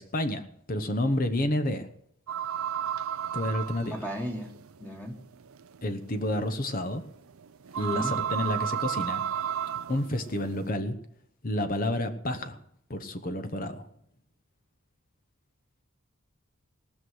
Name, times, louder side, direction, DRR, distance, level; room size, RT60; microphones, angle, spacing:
voice 1, 0.0-1.9 3.3-4.0 5.8-7.0 7.8-9.2 9.9-11.0 11.4-12.6 12.9-13.9, left 1 dB, 40° left, 8 dB, 1.0 m, -30 dB
sound 1, 2.3-10.7, right 9 dB, 85° right, 0.5 m, -34 dB
voice 2, 3.9-4.5 4.8-5.1 7.8-8.2, equal, 10° left, 1 dB, 1.6 m, -35 dB
18.5 x 6.4 x 7.8 m, 0.73 s
head